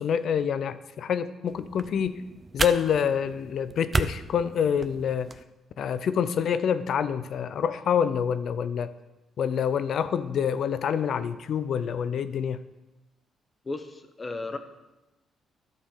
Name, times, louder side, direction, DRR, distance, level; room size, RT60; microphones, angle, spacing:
voice 1, 0.0-2.3 2.5-5.3 5.8-8.9 9.4-12.6, left 7 dB, 65° left, 13 dB, 0.6 m, -27 dB
sound 1, 1.5-5.4, right 3 dB, 30° right, 0.6 m, -33 dB
voice 2, 13.6-14.6, left 3 dB, 30° left, 8 dB, 1.1 m, -34 dB
12.0 x 4.3 x 7.1 m, 1.0 s
supercardioid pair, 60°, 0 cm